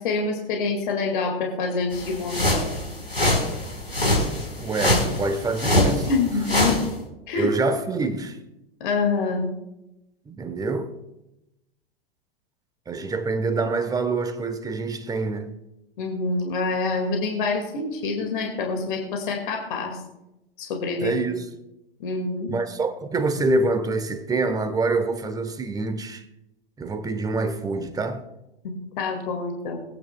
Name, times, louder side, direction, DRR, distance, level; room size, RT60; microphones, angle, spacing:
voice 1, 0.0-2.8 6.1-6.8 7.3-7.5 8.8-9.5 16.0-20.0 20.6-21.2 22.0-22.5 28.6-29.8, left 4 dB, 55° left, 2.0 m, -26 dB
sound 1, 1.9-6.9, left 1 dB, 85° left, 4.1 m, -24 dB
voice 2, 4.6-6.1 7.4-8.4 10.3-11.0 12.9-15.6 21.0-21.4 22.5-26.2 26.8-28.2, right 3 dB, 10° right, 1.0 m, -26 dB
21.5 x 9.2 x 2.2 m
figure-of-eight pair, 90°, 30 cm